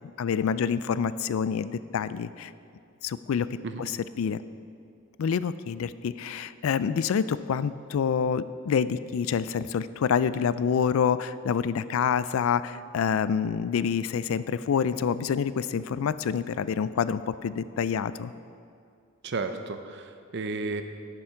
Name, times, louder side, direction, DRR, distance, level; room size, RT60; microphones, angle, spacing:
voice 1, 0.2-2.5 3.0-3.5 3.8-3.9 4.2-4.4 5.2-18.3, left 7 dB, 75° left, 15 dB, 0.3 m, -27 dB
voice 2, 19.2-20.8, right 3 dB, 55° right, 7 dB, 0.6 m, -33 dB
11.0 x 7.0 x 4.5 m, 2.3 s
head